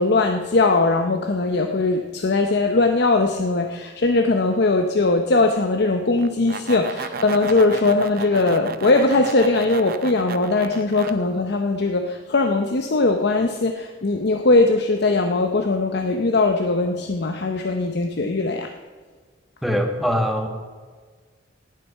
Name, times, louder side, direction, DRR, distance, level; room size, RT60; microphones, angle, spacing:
voice 1, 0.0-18.7, left 3 dB, 60° left, 5 dB, 0.7 m, -20 dB
sound 1, 6.2-11.1, right 5 dB, 55° right, 0.6 m, -33 dB
voice 2, 19.6-20.5, equal, ahead, 3 dB, 1.4 m, -22 dB
18.5 x 7.6 x 5.5 m, 1.5 s
head